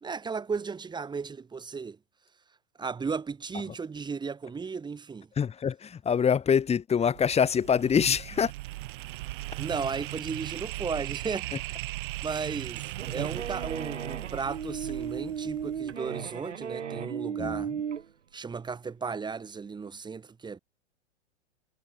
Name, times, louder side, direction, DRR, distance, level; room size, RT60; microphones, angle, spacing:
voice 1, 0.0-2.0 2.8-5.3 9.6-11.4 12.2-12.8 13.1-17.7 18.3-20.6, right 5 dB, 10° right, 2.7 m, -35 dB
voice 2, 5.3-8.5 11.5-11.6 17.4-17.8, left 7 dB, 15° left, 4.9 m, -25 dB
sound 1, 7.0-16.1, right 19 dB, 45° right, 1.0 m, -38 dB
sound 2, 12.7-18.0, right 8 dB, 75° right, 1.4 m, -35 dB
figure-of-eight pair, 105°, 36 cm